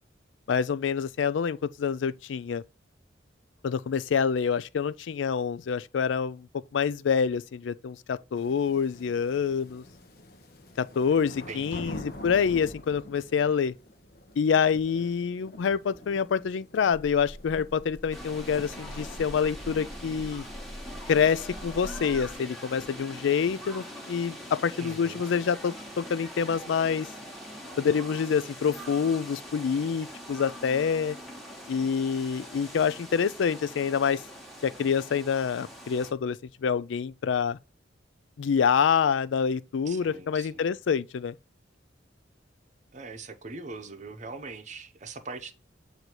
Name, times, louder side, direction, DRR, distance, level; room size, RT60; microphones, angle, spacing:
voice 1, 0.5-2.6 3.6-6.5 6.7-9.8 10.8-13.7 14.4-20.4 21.1-27.1 27.8-31.2 31.7-34.2 34.6-37.6 38.4-41.4, left 6 dB, 85° left, 0.4 m, -27 dB
sound 1, 8.4-23.6, left 1 dB, 55° left, 0.9 m, -47 dB
voice 2, 11.5-12.0 24.8-25.2 39.9-40.7 42.9-45.5, right 3 dB, 40° right, 0.7 m, -42 dB
sound 2, 16.9-22.4, equal, 30° left, 1.3 m, -43 dB
sound 3, 18.1-36.1, equal, ahead, 1.2 m, -43 dB
8.0 x 2.7 x 4.4 m
head